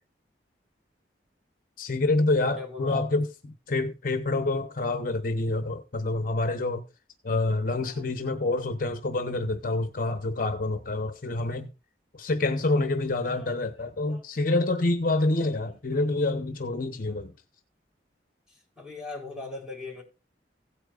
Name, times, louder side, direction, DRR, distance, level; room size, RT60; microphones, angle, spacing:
voice 1, 1.8-3.3 3.7-6.9 7.2-11.7 12.1-17.3, left 2 dB, 50° left, 0.8 m, -27 dB
voice 2, 2.6-3.1 7.7-8.0 13.2-13.5 14.1-14.2 18.5-20.0, left 3 dB, 5° right, 3.6 m, -40 dB
16.5 x 8.7 x 2.4 m
head